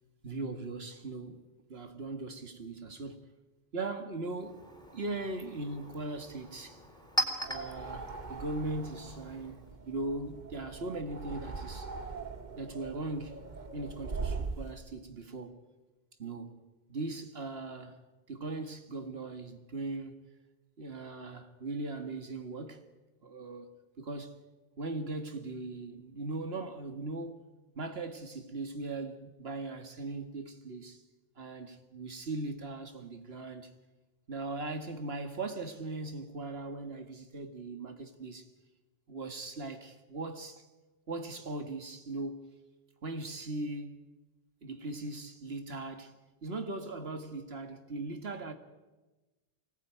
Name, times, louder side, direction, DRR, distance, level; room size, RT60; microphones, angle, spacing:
voice 1, 0.2-3.3 3.7-4.6 4.9-6.8 7.5-9.6 9.9-11.9 12.6-13.4 13.7-15.6 16.2-16.6 16.9-20.2 20.8-22.8 23.2-24.4 24.8-27.4 27.8-31.0 31.4-33.7 34.3-38.5 39.1-40.6 41.1-42.6 43.0-44.1 44.6-46.1 46.4-48.5, right 2 dB, 75° right, 2.1 m, -39 dB
Chink clink, 4.2-9.8, right 1 dB, 5° left, 3.3 m, -40 dB
sound 1, 7.4-14.7, right 4 dB, 50° right, 1.3 m, -41 dB
25.0 x 19.0 x 9.3 m
omnidirectional pair, 1.0 m